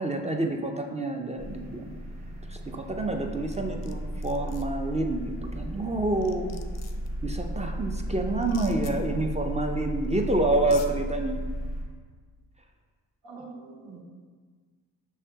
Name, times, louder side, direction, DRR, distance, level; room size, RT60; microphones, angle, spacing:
voice 1, 0.0-2.0 2.5-6.6 7.2-11.4 13.8-14.0, right 2 dB, 15° right, 3 dB, 0.4 m, -28 dB
sound 1, 1.4-11.8, right 1 dB, 40° right, 0.9 m, -34 dB
sound 2, 3.5-3.9 4.2-4.6 5.8-5.9 6.2-7.1 8.4-8.9 10.0-10.1 10.6-10.9, left 7 dB, 40° left, 0.5 m, -46 dB
voice 2, 13.2-14.0, right 3 dB, 80° right, -1 dB, 0.9 m, -44 dB
5.4 x 3.3 x 2.8 m, 1.5 s
supercardioid pair, 50°, 43 cm